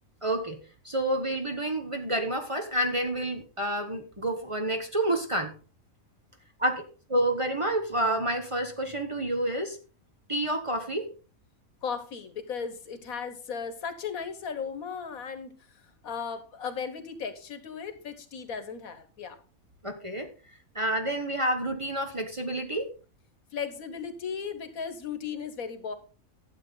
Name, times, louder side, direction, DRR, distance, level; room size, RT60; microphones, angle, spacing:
voice 1, 0.2-0.6 0.8-5.5 6.6-6.8 7.1-9.8 10.3-11.1 19.8-20.3 20.7-22.9, right 1 dB, 25° right, 5 dB, 1.1 m, -29 dB
voice 2, 11.8-15.5 16.0-19.4 23.5-25.9, left 6 dB, 75° left, 11 dB, 1.7 m, -36 dB
11.5 x 8.0 x 3.9 m, 0.35 s
omnidirectional pair, 1.5 m